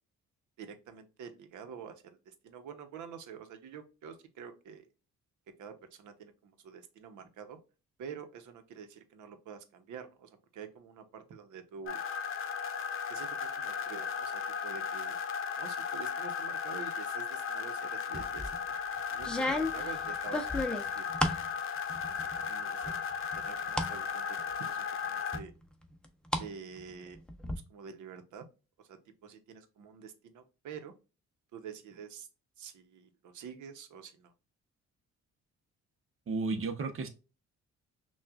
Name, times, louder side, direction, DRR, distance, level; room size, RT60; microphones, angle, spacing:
voice 1, 0.6-4.9 5.6-7.6 8.0-12.0 13.1-13.3 13.6-15.2 15.6-18.7 19.1-21.3 21.9-22.9 23.3-25.5 26.4-27.2 27.7-28.4 28.8-29.0 29.2-30.9 31.5-32.3 32.6-34.3, right 7 dB, 80° right, 0.9 m, -47 dB
sound 1, 11.9-25.4, left 6 dB, 45° left, 0.7 m, -36 dB
sound 2, 18.1-18.6 19.2-21.5 21.9-22.5 22.8-23.9 24.4-24.5 25.3-26.5 26.8-27.5, left 1 dB, 5° left, 0.7 m, -34 dB
voice 2, 36.3-37.1, right 3 dB, 45° right, 0.9 m, -33 dB
5.8 x 2.4 x 2.4 m
cardioid pair, 90°, 30 cm